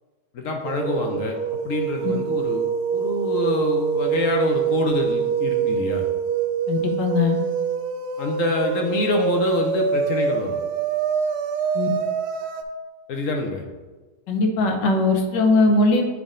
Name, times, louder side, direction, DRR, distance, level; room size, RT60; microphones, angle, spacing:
voice 1, 0.3-1.4 1.6-2.7 2.9-6.1 8.2-10.6 13.1-13.6, left 3 dB, 65° left, 3 dB, 0.9 m, -26 dB
sound 1, 0.6-12.6, right 7 dB, 70° right, 1.0 m, -25 dB
voice 2, 6.7-7.4 11.7-11.9 14.3-16.0, left 3 dB, 90° left, 3 dB, 1.5 m, -20 dB
8.9 x 3.6 x 3.7 m, 1.3 s
omnidirectional pair, 1.8 m